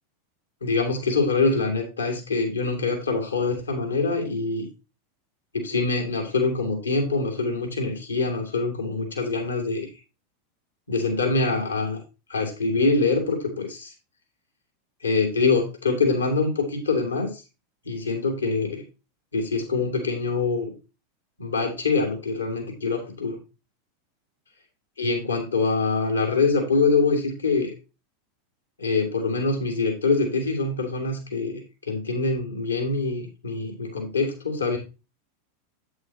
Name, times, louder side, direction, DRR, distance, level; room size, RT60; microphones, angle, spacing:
voice 1, 0.6-4.7 5.5-9.9 10.9-12.0 12.3-13.9 15.0-17.4 17.8-18.8 19.3-20.7 21.4-23.4 25.0-27.7 28.8-34.8, left 3 dB, 85° left, 2 dB, 2.5 m, -24 dB
8.4 x 8.2 x 2.9 m, 0.28 s
figure-of-eight pair, 90°, 0 cm